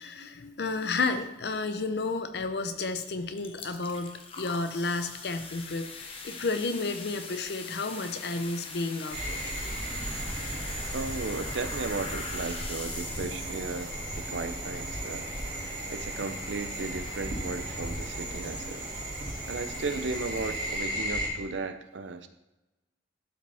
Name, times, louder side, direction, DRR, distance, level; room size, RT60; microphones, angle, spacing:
voice 1, 0.0-5.9 6.2-9.5, left 3 dB, 65° left, 9 dB, 0.6 m, -32 dB
sound 1, 3.0-3.1 3.4-21.1, left 4 dB, 30° left, 0.8 m, -43 dB
sound 2, 9.1-21.3, right 1 dB, 50° right, 2.9 m, -35 dB
voice 2, 10.9-15.3 15.9-18.8 19.5-22.3, right 3 dB, 90° right, 10 dB, 0.6 m, -35 dB
12.0 x 5.0 x 3.5 m, 1.0 s
head